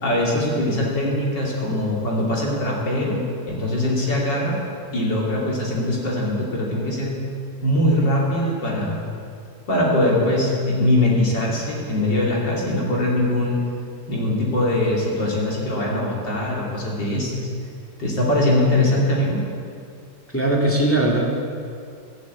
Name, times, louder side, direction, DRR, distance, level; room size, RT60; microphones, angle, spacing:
voice 1, 0.0-4.6 4.9-7.1 7.6-9.0 9.7-13.6 14.1-17.5 18.0-19.4, left 1 dB, 35° left, -3 dB, 3.0 m, -22 dB
voice 2, 20.3-21.2, right 1 dB, 5° left, -3 dB, 1.3 m, -19 dB
13.5 x 10.0 x 8.3 m, 2.3 s
omnidirectional pair, 3.8 m